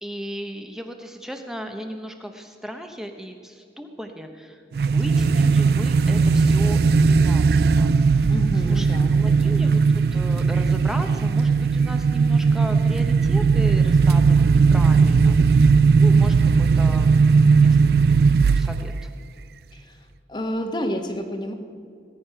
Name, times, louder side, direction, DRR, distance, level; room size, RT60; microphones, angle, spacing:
voice 1, 0.0-8.3 8.7-18.2 18.6-18.9, equal, 5° right, 4 dB, 0.9 m, -36 dB
sound 1, 4.7-19.0, right 5 dB, 60° right, 0.3 m, -18 dB
voice 2, 8.3-9.6 19.7-20.0 20.3-21.5, equal, 25° left, 5 dB, 1.2 m, -30 dB
19.0 x 9.4 x 5.7 m, 2.3 s
head